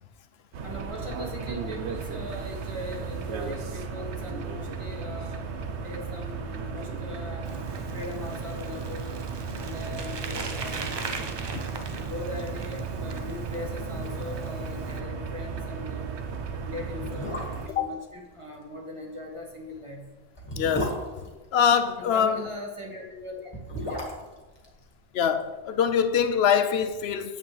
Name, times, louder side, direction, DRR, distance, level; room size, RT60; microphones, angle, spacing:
sound 1, 0.5-17.7, right 5 dB, 80° right, 1.0 m, -35 dB
voice 1, 0.6-5.4 5.8-9.1 9.6-11.0 11.9-16.1 16.5-20.0 22.0-23.5 23.9-24.1, left 1 dB, 30° right, 1.5 m, -40 dB
Bicycle, 7.4-15.0, right 3 dB, 45° right, 0.3 m, -38 dB
sound 2, 13.8-14.5 14.8-14.9 15.3-15.5 16.2-16.3 16.9-17.8 19.4-22.0 23.3-25.5 25.8-25.9, left 1 dB, 25° left, 1.6 m, -35 dB
voice 2, 20.6-20.9 21.5-22.4 25.1-27.4, left 7 dB, 70° left, 0.8 m, -23 dB
9.4 x 7.3 x 3.3 m
omnidirectional pair, 1.1 m